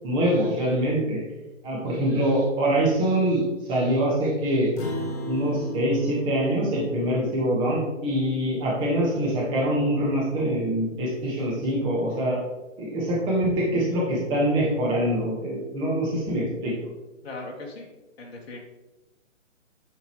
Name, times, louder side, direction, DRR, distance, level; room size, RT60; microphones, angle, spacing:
voice 1, 0.0-1.2 1.6-3.4 3.7-4.7 5.3-12.4 12.8-16.7, right 1 dB, 10° right, -4 dB, 1.4 m, -24 dB
Acoustic guitar, 4.8-9.5, equal, 15° left, 0.7 m, -37 dB
voice 2, 17.2-17.9 18.2-18.6, left 2 dB, 50° left, -1 dB, 1.6 m, -38 dB
10.5 x 5.3 x 3.1 m, 1.1 s
hypercardioid pair, 155°, 40 cm